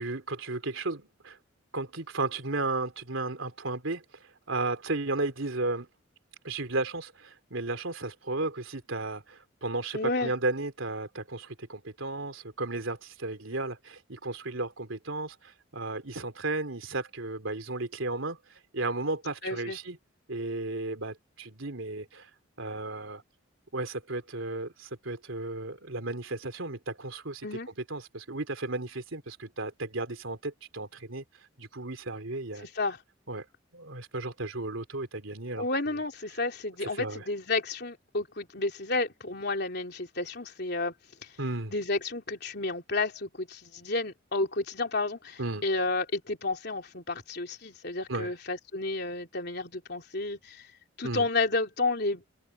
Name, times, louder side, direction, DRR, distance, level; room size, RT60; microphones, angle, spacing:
voice 1, 0.0-1.4 1.7-4.0 4.5-5.9 6.4-18.4 18.7-20.0 20.3-22.3 22.6-23.2 23.7-27.5 27.9-31.2 31.6-32.7 33.3-33.4 33.7-35.9 36.8-37.2 41.4-41.7 45.4-45.6 48.1-48.3 51.0-51.3, right 2 dB, 90° right, 3.3 m, -34 dB
voice 2, 9.9-10.3 19.4-19.8 27.4-27.7 32.6-33.0 35.6-40.9 41.7-50.7 51.0-52.3, left 3 dB, 55° left, 3.5 m, -31 dB
open air
head